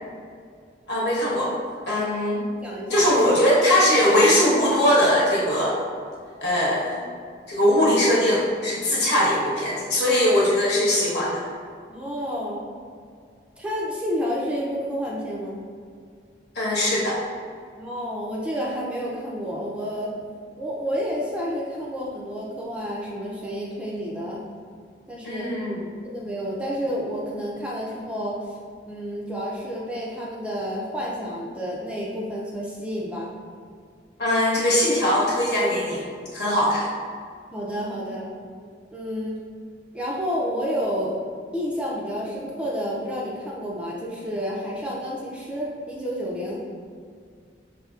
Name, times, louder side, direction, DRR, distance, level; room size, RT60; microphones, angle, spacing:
voice 1, 0.9-1.6 1.9-2.4 2.9-5.8 6.4-7.0 7.5-11.4 16.5-17.2 25.2-25.8 34.2-36.0 36.3-36.9, left 1 dB, 70° left, -6 dB, 1.2 m, -20 dB
voice 2, 2.5-3.1 11.9-12.6 13.6-15.6 17.8-20.2 20.6-24.4 25.1-25.6 26.0-28.5 28.9-33.3 37.5-38.3 38.9-39.4 39.9-41.1 41.5-46.8, equal, 5° right, -4 dB, 0.4 m, -30 dB
5.6 x 2.6 x 2.4 m, 2.2 s
head